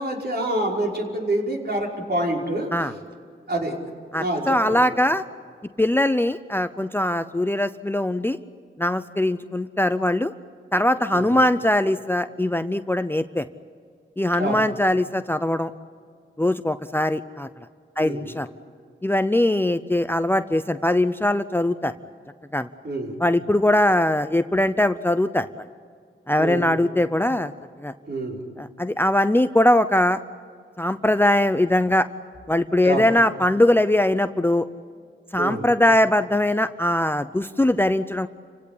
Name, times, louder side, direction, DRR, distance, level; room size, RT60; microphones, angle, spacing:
voice 1, 0.0-2.7 3.5-3.7 4.1-4.8 11.1-11.3 14.4-14.6 18.0-18.3 22.8-23.2 26.4-26.7 28.1-28.4 32.8-33.1 35.4-35.7, right 1 dB, 50° right, -1 dB, 5.3 m, -27 dB
voice 2, 4.1-5.2 5.8-8.4 8.8-10.3 10.7-13.5 14.2-15.7 16.4-17.5 18.0-18.5 19.0-21.9 22.5-22.7 23.2-25.7 26.3-27.5 27.8-27.9 28.6-30.2 30.8-32.1 32.5-34.7 35.3-38.3, left 1 dB, 10° left, 12 dB, 0.6 m, -21 dB
29.5 x 17.0 x 8.6 m, 2.2 s
wide cardioid pair, 80°, 21 cm